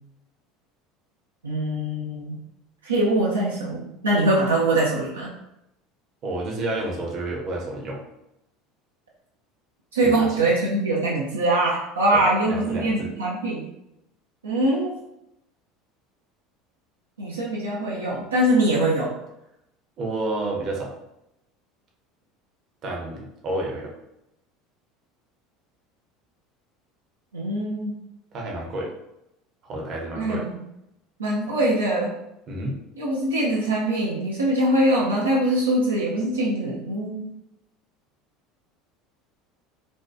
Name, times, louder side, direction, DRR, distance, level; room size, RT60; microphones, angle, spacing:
voice 1, 1.4-2.4 2.8-5.3 9.9-13.7 14.4-14.9 17.2-19.1 27.3-27.9 30.2-30.5 31.2-32.1 33.0-37.3, right 1 dB, 85° right, -5 dB, 0.4 m, -23 dB
voice 2, 6.2-8.0 10.0-10.5 12.1-13.1 20.0-20.9 22.8-23.9 28.3-28.9 29.6-30.4 32.5-32.8, right 2 dB, 45° right, -1 dB, 0.7 m, -30 dB
2.6 x 2.2 x 2.4 m, 0.85 s
figure-of-eight pair, 70°, 0 cm